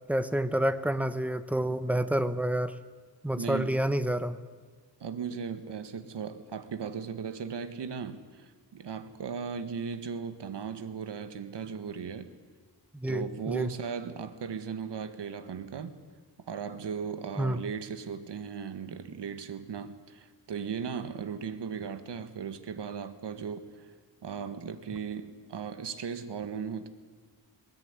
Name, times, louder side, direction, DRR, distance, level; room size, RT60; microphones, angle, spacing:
voice 1, 0.1-2.7 3.2-4.4 12.9-13.7 17.4-17.6, right 1 dB, 5° right, 12 dB, 1.0 m, -28 dB
voice 2, 3.3-3.8 5.0-12.3 13.1-15.9 16.5-23.9 24.2-26.9, right 6 dB, 75° right, 11 dB, 1.8 m, -37 dB
21.0 x 19.5 x 9.7 m, 1.4 s
wide cardioid pair, 130°, 42 cm